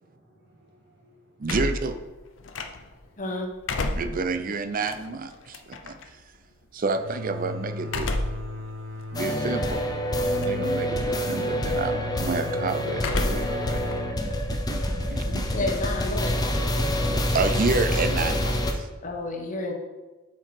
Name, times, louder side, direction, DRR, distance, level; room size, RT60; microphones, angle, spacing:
voice 1, 0.0-1.7 8.6-9.3, right 1 dB, 65° right, -2 dB, 1.9 m, -54 dB
sound 1, 1.4-3.1 3.5-6.1 7.8-8.5 9.0-9.1 10.2-10.7 11.0-11.4 13.0-13.6 13.9-15.3, left 2 dB, 70° left, 0.6 m, -31 dB
voice 2, 1.4-2.0 3.9-5.9 6.7-8.1 9.1-9.8 10.3-13.8 14.5-14.8 15.1-15.5 17.1-18.9, right 3 dB, 45° right, 9 dB, 0.5 m, -29 dB
voice 3, 3.2-3.5 15.3-16.5 19.0-19.7, left 2 dB, 40° left, 2 dB, 1.0 m, -30 dB
sound 2, 6.9-16.3, left 1 dB, 80° right, 1.1 m, -37 dB
sound 3, 9.1-18.7, equal, 20° left, 0.7 m, -27 dB
7.3 x 4.5 x 4.8 m, 1.2 s
head